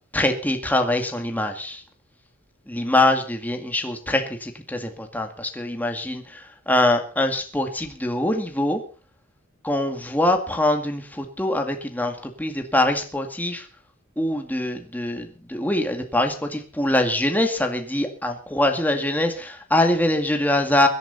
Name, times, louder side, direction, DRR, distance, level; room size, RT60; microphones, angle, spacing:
voice 1, 0.1-1.8 2.7-8.8 9.6-13.7 14.2-20.9, left 1 dB, 10° left, 4 dB, 2.1 m, -23 dB
24.5 x 11.0 x 4.2 m, 0.37 s
head